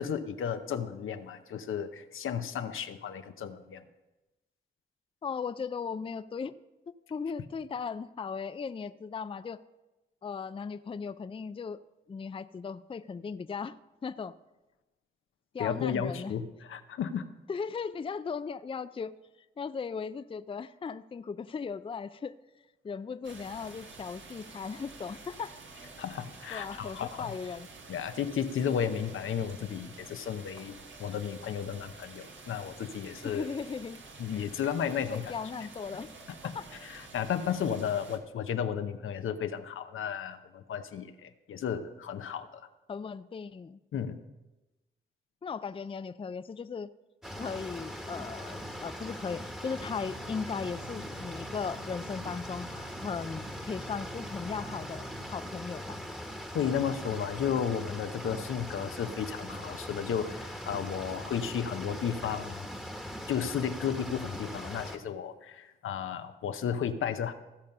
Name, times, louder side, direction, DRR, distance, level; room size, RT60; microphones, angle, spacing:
voice 1, 0.0-3.8 15.6-17.2 26.0-27.4 27.9-33.5 34.2-35.3 36.4-36.6 36.8-42.6 43.9-44.2 56.5-62.7 63.3-67.3, left 8 dB, 75° left, 9 dB, 0.7 m, -33 dB
voice 2, 5.2-6.6 7.1-9.6 10.2-11.8 12.1-13.8 14.0-14.3 15.5-16.3 17.5-19.1 19.6-22.3 22.8-25.5 26.5-27.7 28.9-29.0 33.1-34.0 35.1-36.1 36.5-36.6 42.9-43.8 45.4-46.9 47.3-56.0, left 5 dB, 25° left, 13 dB, 0.4 m, -37 dB
sound 1, 23.2-38.2, right 3 dB, 65° right, 1.4 m, -49 dB
sound 2, 47.2-65.0, equal, 5° right, 1.3 m, -41 dB
Organ, 49.8-58.6, right 3 dB, 85° right, 1.2 m, -52 dB
15.0 x 5.3 x 5.4 m, 1.1 s
supercardioid pair, 50°, 21 cm